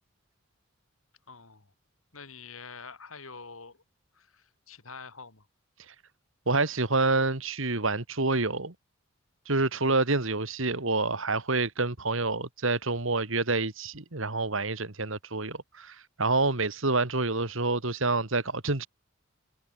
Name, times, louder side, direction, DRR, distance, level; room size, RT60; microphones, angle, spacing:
voice 1, 1.3-1.7 2.1-3.8 4.1-5.5, left 5 dB, 75° left, 4.3 m, -46 dB
voice 2, 6.5-8.7 9.5-18.9, right 3 dB, 65° right, 2.3 m, -27 dB
head